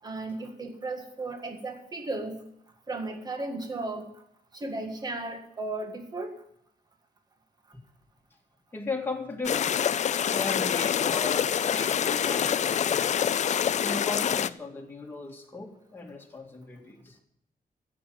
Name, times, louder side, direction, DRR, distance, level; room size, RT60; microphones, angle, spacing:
voice 1, 0.0-2.4 2.9-4.1 4.5-6.4, right 2 dB, 25° right, 4 dB, 1.8 m, -35 dB
voice 2, 8.7-9.7 10.2-13.1 13.8-17.2, left 3 dB, 15° left, 0 dB, 2.2 m, -36 dB
sound 1, 9.4-14.5, left 8 dB, 50° left, 0.4 m, -26 dB
15.0 x 7.5 x 7.6 m, 0.74 s
wide cardioid pair, 165°, 15 cm